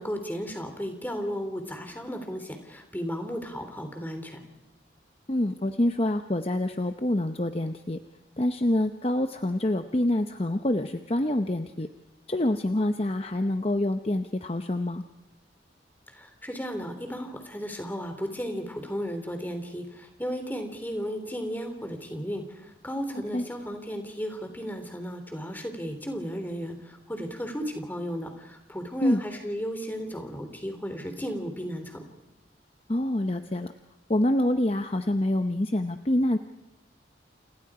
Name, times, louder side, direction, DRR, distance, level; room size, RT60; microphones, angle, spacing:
voice 1, 0.0-4.4 16.1-32.1, equal, 10° left, 6 dB, 3.2 m, -34 dB
voice 2, 5.3-8.0 8.4-11.9 12.3-15.0 23.3-23.5 29.0-29.2 32.9-33.7 34.1-36.4, left 1 dB, 35° left, 8 dB, 0.8 m, -26 dB
29.5 x 29.0 x 4.9 m, 0.93 s
head